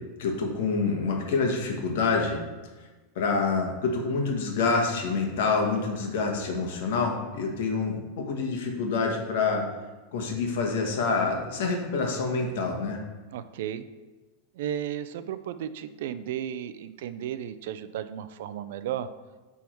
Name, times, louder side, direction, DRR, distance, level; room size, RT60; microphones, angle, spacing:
voice 1, 0.2-2.4 3.1-9.7 10.1-13.0, left 4 dB, 65° left, 2 dB, 1.3 m, -27 dB
voice 2, 13.3-13.8 14.6-19.1, right 10 dB, 60° right, 12 dB, 0.4 m, -34 dB
9.2 x 3.6 x 4.5 m, 1.2 s
supercardioid pair, 175°, 0 cm